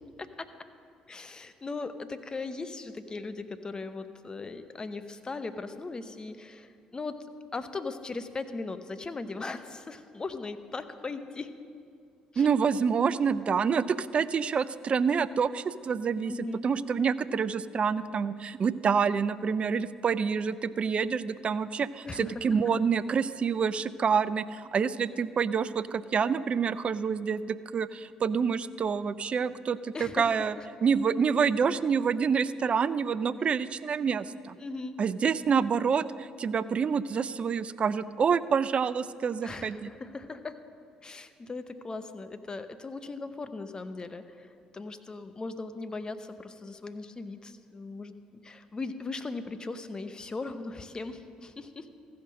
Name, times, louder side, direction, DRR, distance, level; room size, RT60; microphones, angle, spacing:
voice 1, 1.1-11.5 12.3-12.5 16.3-16.7 22.0-22.5 29.9-30.3 30.6-30.7 34.6-35.0 39.4-40.6 41.0-51.9, left 3 dB, 30° left, 10 dB, 0.8 m, -38 dB
voice 2, 12.4-16.3 16.6-30.5 30.8-34.6 35.0-39.9, right 6 dB, 45° right, 16 dB, 0.4 m, -27 dB
14.5 x 5.8 x 6.4 m, 2.3 s
hypercardioid pair, 55°, 3 cm